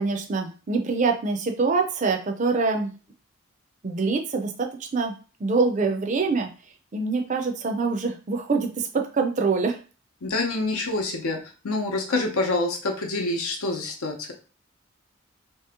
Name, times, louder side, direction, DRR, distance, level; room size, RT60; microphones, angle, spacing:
voice 1, 0.0-2.9 3.8-5.1 5.4-6.5 6.9-8.9 9.1-9.8, right 4 dB, 35° right, 3 dB, 0.4 m, -25 dB
voice 2, 10.2-11.4 11.6-14.3, left 2 dB, 90° left, 2 dB, 0.8 m, -26 dB
2.9 x 2.8 x 3.6 m, 0.35 s
head